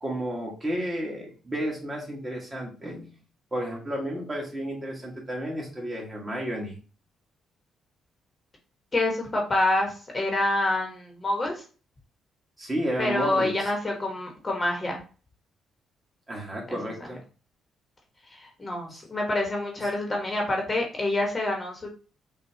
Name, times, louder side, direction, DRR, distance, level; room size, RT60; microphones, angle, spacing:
voice 1, 0.0-3.1 3.5-6.8 12.6-13.7 16.3-17.2, right 1 dB, 25° right, -2 dB, 1.7 m, -32 dB
voice 2, 8.9-11.6 13.0-15.0 16.7-16.8 18.3-21.9, left 2 dB, 30° left, 0 dB, 1.3 m, -27 dB
5.5 x 2.6 x 2.8 m, 0.36 s
cardioid pair, 90°, 0 cm